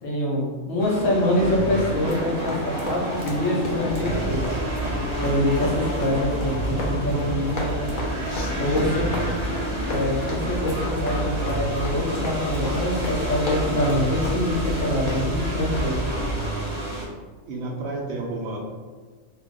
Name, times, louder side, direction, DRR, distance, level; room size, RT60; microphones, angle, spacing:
voice 1, 0.0-4.4 5.2-7.9 8.6-9.1 9.9-16.0, left 1 dB, 70° left, -3 dB, 1.1 m, -25 dB
sound 1, 0.8-17.1, right 1 dB, 30° right, 0.6 m, -30 dB
sound 2, 2.0-15.1, left 1 dB, 50° left, 0.6 m, -34 dB
sound 3, 4.1-16.4, right 1 dB, 5° left, 1.0 m, -32 dB
voice 2, 17.5-18.6, right 2 dB, 65° right, -1 dB, 0.8 m, -30 dB
2.8 x 2.2 x 3.5 m, 1.4 s
omnidirectional pair, 1.4 m